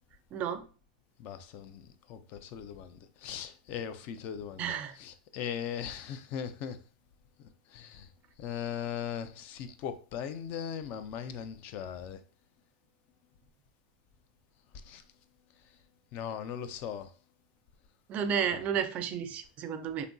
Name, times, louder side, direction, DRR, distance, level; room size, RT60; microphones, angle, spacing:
voice 1, 0.3-0.6 4.6-4.9 18.1-20.1, right 8 dB, 30° right, 0.4 m, -32 dB
voice 2, 1.2-1.8 2.1-4.7 5.0-6.8 7.7-8.1 8.4-12.2 14.9-15.0 16.1-17.1, left 8 dB, 40° left, 0.3 m, -39 dB
2.9 x 2.5 x 2.2 m
supercardioid pair, 135°, 5 cm